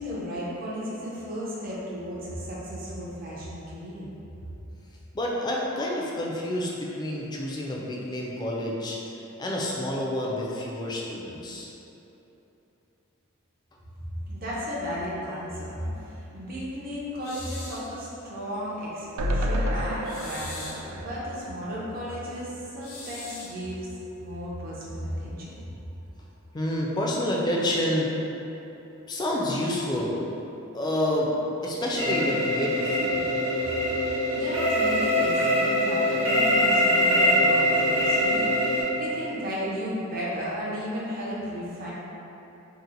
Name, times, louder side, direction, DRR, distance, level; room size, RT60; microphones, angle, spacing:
voice 1, 0.0-4.1 14.0-23.9 24.2-25.5 34.1-41.9, equal, 45° right, -7 dB, 0.6 m, -34 dB
voice 2, 5.1-9.0 9.4-11.7 26.5-28.1 29.1-30.2 30.7-31.3 31.6-33.4, left 1 dB, 20° left, -3 dB, 0.3 m, -28 dB
sound 1, 17.2-17.9 20.0-20.9 22.8-23.6, left 3 dB, 80° left, 0.6 m, -41 dB
sound 2, 19.2-22.4 22.8-22.9 23.1-23.2, equal, 85° right, 0.3 m, -30 dB
sound 3, 32.0-38.8, equal, 70° right, 1.1 m, -23 dB
2.8 x 2.0 x 3.8 m, 3.0 s
head